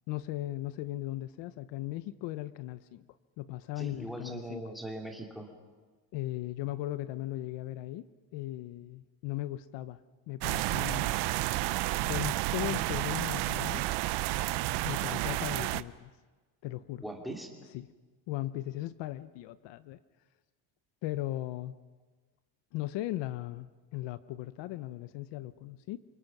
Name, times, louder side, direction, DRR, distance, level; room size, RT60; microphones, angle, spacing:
voice 1, 0.1-3.0 3.4-4.6 6.1-10.0 10.3-11.3 12.1-13.9 14.8-16.1 16.6-17.0 17.7-17.9 18.3-20.0 21.0-21.7 22.7-26.0, left 15 dB, 65° left, 14 dB, 0.9 m, -37 dB
voice 2, 3.8-5.5 15.0-15.2 17.0-17.5, right 1 dB, ahead, 2 dB, 2.5 m, -40 dB
sound 1, 10.4-15.8, right 17 dB, 60° right, 0.7 m, -31 dB
28.5 x 25.0 x 6.1 m, 1.3 s
cardioid pair, 175°, 45 cm